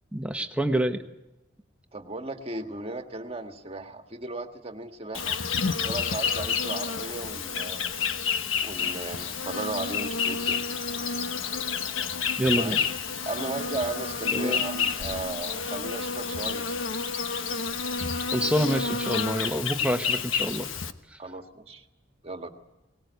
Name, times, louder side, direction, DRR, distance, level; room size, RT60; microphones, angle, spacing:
voice 1, 0.1-1.0 12.4-12.8 14.3-14.6 18.3-20.7, right 1 dB, 5° right, 6 dB, 1.2 m, -27 dB
voice 2, 1.9-5.4 5.8-7.9 8.6-10.7 12.5-12.9 13.3-16.6 21.2-21.8 22.2-22.5, right 2 dB, 30° right, 5 dB, 1.7 m, -36 dB
Insect, 5.1-20.9, left 5 dB, 80° left, 1.2 m, -29 dB
22.0 x 19.5 x 8.2 m, 0.95 s
head